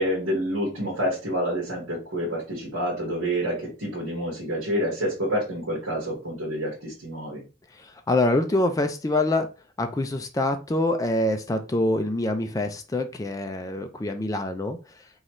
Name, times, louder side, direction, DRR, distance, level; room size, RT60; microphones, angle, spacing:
voice 1, 0.0-7.4, equal, 80° right, -4 dB, 1.5 m, -28 dB
voice 2, 7.8-9.5 9.8-14.8, left 2 dB, 15° left, 6 dB, 0.4 m, -25 dB
3.9 x 3.1 x 3.0 m, 0.32 s
head